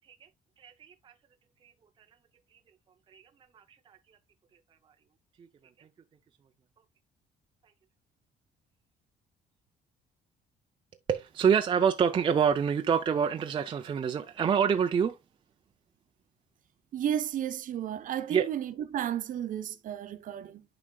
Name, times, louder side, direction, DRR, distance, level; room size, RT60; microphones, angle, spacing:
voice 1, 0.6-1.1 1.6-1.7 3.1-3.2 3.5-4.0 5.4-5.5 5.8-5.9 11.1-15.2 18.3-18.5, right 7 dB, 30° right, 0.5 m, -27 dB
voice 2, 16.9-20.6, right 10 dB, 50° right, 0.9 m, -33 dB
11.0 x 5.0 x 2.3 m
cardioid pair, 170°, 17 cm